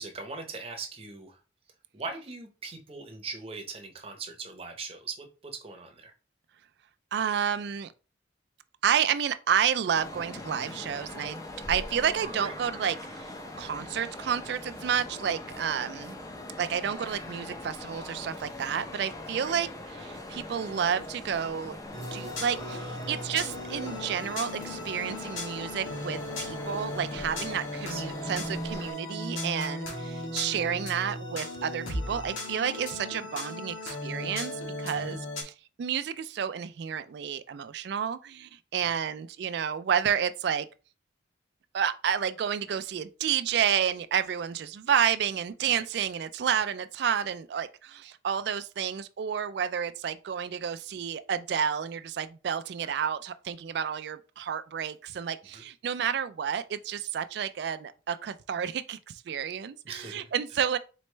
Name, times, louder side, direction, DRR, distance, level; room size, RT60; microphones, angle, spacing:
voice 1, 0.0-1.4 1.9-6.1 12.2-12.5 19.4-19.5 27.3-28.1 29.6-29.7 34.9-35.2 38.8-38.9 45.7-45.8 46.5-46.6 52.8-52.9 55.5-55.6 59.8-60.3, right 4 dB, 30° right, 0.7 m, -41 dB
voice 2, 7.1-7.9 8.8-11.4 11.7-16.2 16.6-19.7 20.0-21.8 22.1-34.5 34.8-35.5 35.8-40.7 41.7-60.8, right 8 dB, 55° right, 0.3 m, -30 dB
sound 1, 9.9-28.9, left 1 dB, 15° left, 0.5 m, -42 dB
sound 2, 21.9-35.4, left 1 dB, 90° left, 1.6 m, -36 dB
4.2 x 3.1 x 3.2 m
head